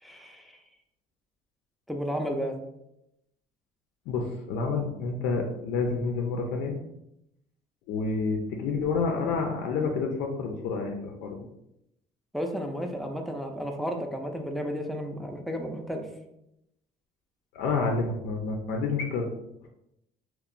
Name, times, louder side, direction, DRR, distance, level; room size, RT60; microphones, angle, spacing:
voice 1, 0.0-0.6 1.9-2.6 12.3-16.1, equal, ahead, 2 dB, 0.3 m, -33 dB
voice 2, 4.1-6.8 7.9-11.4 17.5-19.3, left 4 dB, 85° left, 2 dB, 0.4 m, -29 dB
2.9 x 2.0 x 2.4 m, 0.84 s
cardioid pair, 110°, 17 cm